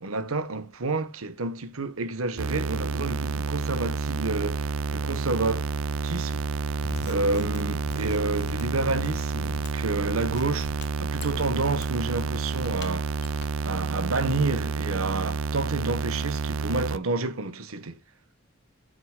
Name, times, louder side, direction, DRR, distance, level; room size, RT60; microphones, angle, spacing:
voice 1, 0.0-5.7 6.0-6.4 7.0-10.7 11.0-13.1 13.6-18.0, right 3 dB, 85° right, 1.2 m, -29 dB
sound 1, 2.4-17.0, right 4 dB, 70° right, 0.5 m, -29 dB
Mechanisms, 6.7-13.9, left 2 dB, 55° left, 1.3 m, -43 dB
9.9 x 7.9 x 2.3 m
head